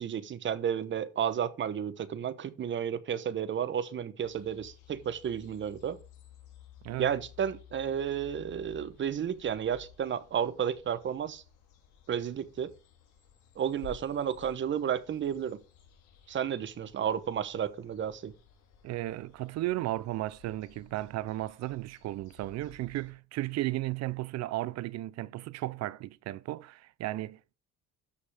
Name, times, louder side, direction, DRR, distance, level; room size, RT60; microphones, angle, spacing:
voice 1, 0.0-6.0 7.0-11.4 12.1-12.7 13.6-15.6 16.3-18.3, right 8 dB, 40° right, 1.0 m, -32 dB
sound 1, 4.2-23.1, left 6 dB, 85° left, 3.7 m, -56 dB
voice 2, 6.8-7.1 18.8-27.5, right 16 dB, 60° right, 0.5 m, -35 dB
13.5 x 5.5 x 4.9 m
cardioid pair, 120°, 29 cm